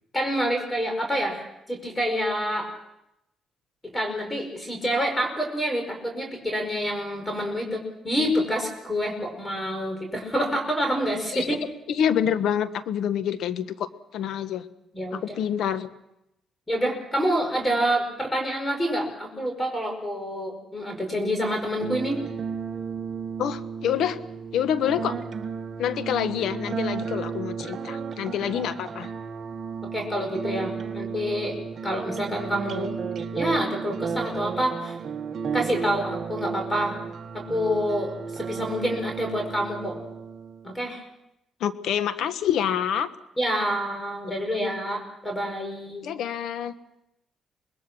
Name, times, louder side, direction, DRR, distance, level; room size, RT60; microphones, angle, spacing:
voice 1, 0.1-2.7 3.8-11.6 14.9-15.3 16.7-22.2 28.5-28.7 29.9-31.6 31.8-33.0 33.3-35.0 35.5-37.0 37.3-40.0 40.6-41.0 43.4-46.0, equal, 15° left, 4 dB, 5.1 m, -27 dB
voice 2, 11.9-14.6 15.1-15.9 23.4-24.2 24.5-25.2 25.8-29.1 41.6-43.1 46.0-46.7, left 9 dB, 75° left, 12 dB, 1.2 m, -27 dB
sound 1, 21.8-40.8, right 6 dB, 50° right, 1.4 m, -33 dB
25.5 x 20.5 x 6.1 m, 0.85 s
cardioid pair, 90°, 0 cm